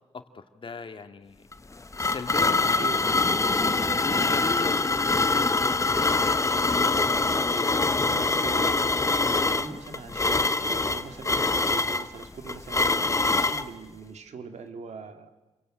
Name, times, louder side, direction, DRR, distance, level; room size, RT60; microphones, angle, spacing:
voice 1, 0.1-1.4 2.0-3.4 4.0-5.5 5.9-6.3 6.9-8.3, left 4 dB, 45° left, 7 dB, 2.1 m, -38 dB
sound 1, 1.5-13.7, left 3 dB, 25° left, 1.1 m, -24 dB
voice 2, 2.8-3.2 3.6-4.4 7.3-8.9 9.2-15.3, right 5 dB, 75° right, 7 dB, 2.3 m, -42 dB
28.5 x 22.5 x 9.0 m, 1.2 s
cardioid pair, 75°, 12 cm